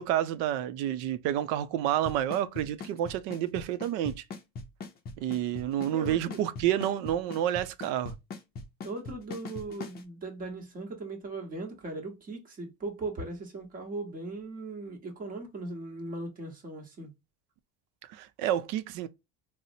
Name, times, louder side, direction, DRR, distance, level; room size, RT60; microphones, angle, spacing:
voice 1, 0.0-4.2 5.2-8.1 18.1-19.1, right 11 dB, 80° right, 0.5 m, -29 dB
Drum kit / Snare drum / Bass drum, 2.1-10.0, left 4 dB, 30° left, 0.5 m, -39 dB
voice 2, 5.9-6.4 8.8-17.1, right 2 dB, 30° right, 1.1 m, -38 dB
4.1 x 2.0 x 2.6 m
cardioid pair, 160°, 30 cm